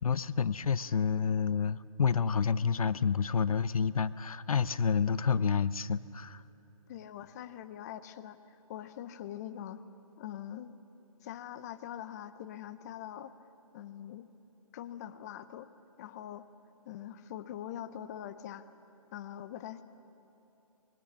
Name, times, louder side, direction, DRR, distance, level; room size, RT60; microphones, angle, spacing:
voice 1, 0.0-6.4, left 6 dB, 70° left, 17 dB, 0.6 m, -29 dB
voice 2, 6.9-8.4 8.7-9.8 10.2-10.7 11.2-13.4 13.7-14.3 14.7-15.7 16.0-16.5 16.8-18.7 19.1-19.8, left 11 dB, 30° left, 12 dB, 0.8 m, -43 dB
25.5 x 20.5 x 7.5 m, 2.9 s
figure-of-eight pair, 145°, 19 cm